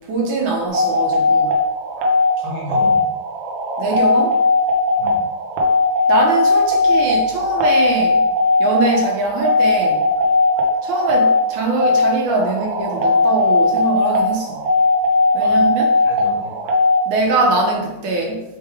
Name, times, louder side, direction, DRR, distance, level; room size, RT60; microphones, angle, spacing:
voice 1, 0.1-1.6 2.8-2.9 3.8-4.4 6.1-8.2 8.6-10.1 10.8-14.6 15.3-15.9 17.1-18.4, right 3 dB, 70° right, 0 dB, 2.2 m, -22 dB
sound 1, 0.7-17.0, left 3 dB, 90° right, 1.3 m, -17 dB
voice 2, 2.4-3.2 5.0-5.3 15.4-15.7 16.0-16.6, left 2 dB, 85° left, -3 dB, 3.3 m, -32 dB
6.5 x 3.3 x 4.8 m, 0.98 s
omnidirectional pair, 3.8 m